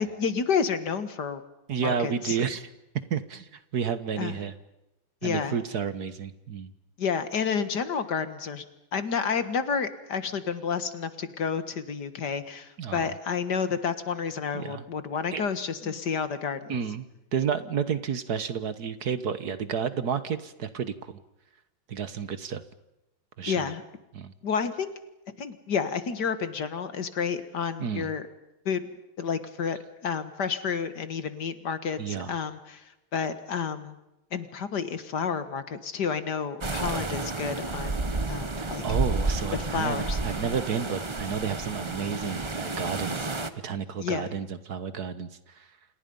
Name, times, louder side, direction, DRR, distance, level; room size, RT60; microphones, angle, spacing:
voice 1, 0.0-1.4 1.8-2.4 4.2-4.4 5.2-5.6 7.0-8.6 8.9-16.8 23.5-23.8 24.4-24.9 25.4-28.2 28.7-28.8 29.2-32.8 33.1-33.9 34.3-38.8 39.5-40.2 44.0-44.3, left 6 dB, 55° left, 11 dB, 2.1 m, -30 dB
voice 2, 1.7-2.7 3.1-4.5 5.2-6.7 12.8-13.1 14.5-14.9 15.3-15.4 15.8-15.9 16.7-21.2 21.9-22.6 23.4-23.7 24.1-24.3 27.8-28.1 32.0-32.3 38.6-43.3 43.6-45.7, right 7 dB, 55° right, 13 dB, 1.6 m, -31 dB
sound 1, 36.6-43.5, right 2 dB, 20° right, 0.8 m, -31 dB
29.0 x 28.0 x 5.5 m, 0.92 s
omnidirectional pair, 2.2 m